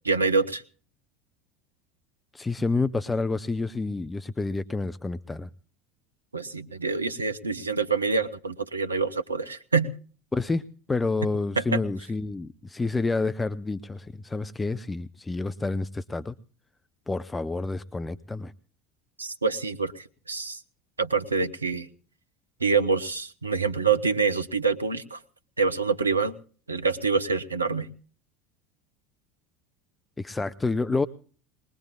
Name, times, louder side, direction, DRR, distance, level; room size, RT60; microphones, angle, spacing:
voice 1, 0.0-0.6 6.3-9.9 11.2-11.3 11.6-11.8 19.2-20.6 21.0-21.9 22.6-25.2 25.6-26.4 26.7-27.9, right 4 dB, 85° right, 12 dB, 0.8 m, -26 dB
voice 2, 2.3-5.5 10.3-16.4 17.1-18.5 30.2-31.1, left 3 dB, 15° left, 13 dB, 0.6 m, -29 dB
21.5 x 21.0 x 2.3 m, 0.42 s
figure-of-eight pair, 70°, 0 cm